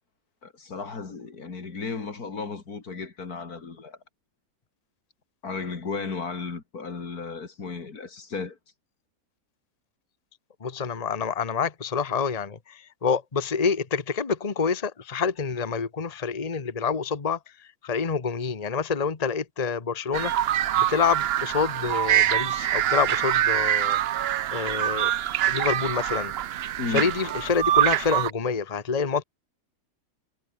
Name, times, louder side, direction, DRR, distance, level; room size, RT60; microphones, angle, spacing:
voice 1, 0.4-4.0 5.4-8.6 26.8-27.1, left 4 dB, 80° left, 3.2 m, -34 dB
voice 2, 10.6-20.3 20.8-24.0 24.5-25.1 25.5-26.3 26.9-29.2, left 5 dB, 25° left, 1.3 m, -27 dB
sound 1, 20.1-28.3, right 12 dB, 65° right, 0.6 m, -24 dB
omnidirectional pair, 1.6 m